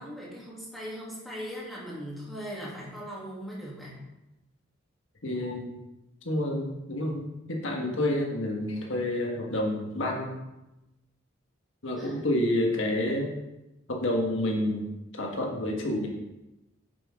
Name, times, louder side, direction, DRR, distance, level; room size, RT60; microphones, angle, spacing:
voice 1, 0.0-4.0 12.0-12.2, equal, ahead, -7 dB, 2.8 m, -39 dB
voice 2, 5.2-5.7 6.2-10.4 11.8-13.3 13.9-16.1, left 1 dB, 70° left, 0 dB, 1.6 m, -29 dB
9.3 x 7.8 x 3.7 m, 0.95 s
head